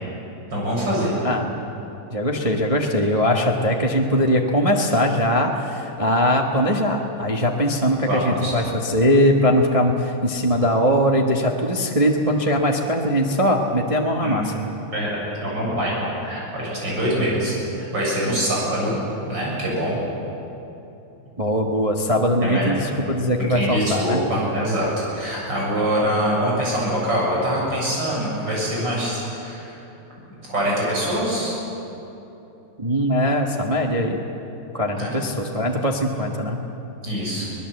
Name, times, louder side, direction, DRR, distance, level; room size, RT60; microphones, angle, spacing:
voice 1, 0.5-1.1 8.1-8.5 14.2-14.4 14.9-15.1 15.4-19.0 19.3-20.0 22.4-22.8 23.4-29.7 30.5-31.5 34.9-35.2 37.0-37.5, equal, 35° right, -4 dB, 7.8 m, -24 dB
voice 2, 1.2-1.7 2.1-14.5 21.4-24.2 32.8-34.2 34.7-36.6, equal, 70° right, 0 dB, 0.3 m, -21 dB
23.5 x 19.0 x 8.0 m, 3.0 s
omnidirectional pair, 3.3 m